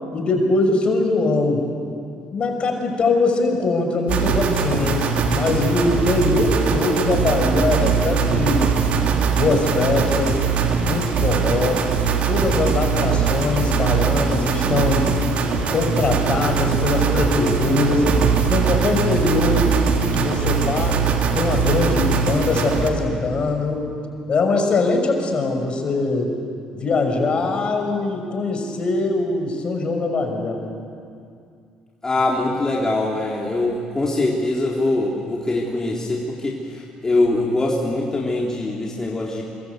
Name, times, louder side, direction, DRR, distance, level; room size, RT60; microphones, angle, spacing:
voice 1, 0.1-1.6 2.3-8.7 9.3-10.4 10.8-11.8 12.3-15.1 15.7-18.1 18.4-19.7 20.1-21.0 21.3-23.8 24.3-26.3 26.7-30.6, left 3 dB, 45° left, 4 dB, 5.8 m, -22 dB
sound 1, 4.1-22.9, right 6 dB, 60° right, 3.0 m, -21 dB
voice 2, 32.0-39.4, left 2 dB, 20° left, -3 dB, 3.8 m, -23 dB
25.0 x 23.5 x 8.3 m, 2.4 s
supercardioid pair, 70°, 3 cm